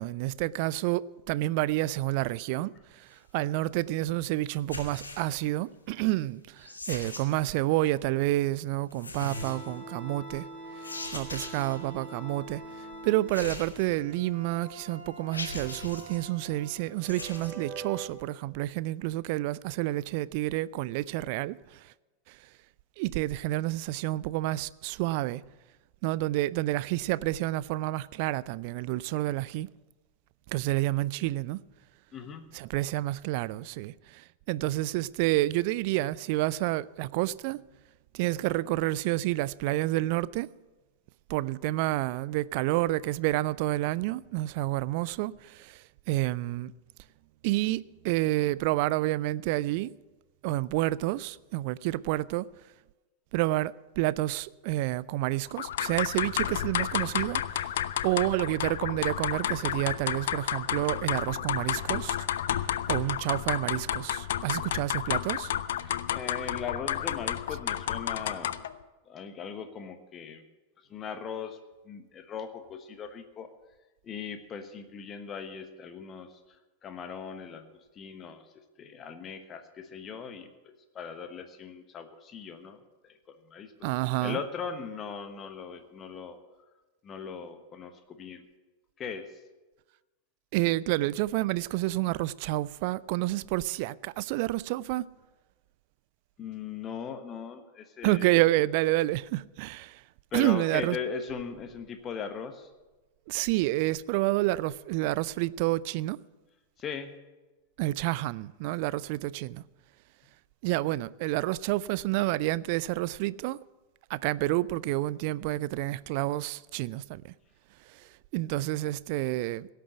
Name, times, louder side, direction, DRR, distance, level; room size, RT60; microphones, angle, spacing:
voice 1, 0.0-10.5 11.1-21.9 22.3-22.4 23.0-25.4 26.0-29.7 30.5-31.6 32.5-37.6 38.1-40.5 41.3-46.7 47.4-49.9 50.4-52.5 53.3-62.2 62.9-65.5 83.8-84.4 90.5-95.1 98.0-100.0 100.3-101.0 103.3-106.2 107.8-109.6 110.6-113.6 114.1-117.3 117.9-119.7, right 17 dB, 45° right, 0.3 m, -29 dB
sound 1, 4.6-5.4 6.6-7.5 8.9-9.7 10.8-11.8 13.3-14.2 14.7-14.8 15.3-16.2 17.0-17.5, left 2 dB, 75° left, 1.6 m, -40 dB
sound 2, 9.2-18.1, right 2 dB, 20° right, 4.6 m, -44 dB
voice 2, 32.1-32.5 66.1-68.5 69.1-70.4 70.9-71.6 71.8-73.5 74.0-76.3 76.8-77.7 77.9-83.7 84.2-86.4 87.0-88.4 89.0-89.3 96.4-98.4 100.3-102.7 106.8-107.1, left 6 dB, 25° left, 1.2 m, -39 dB
sound 3, 55.6-68.8, left 11 dB, 60° left, 0.4 m, -31 dB
17.0 x 6.8 x 7.9 m
figure-of-eight pair, 90°, 0 cm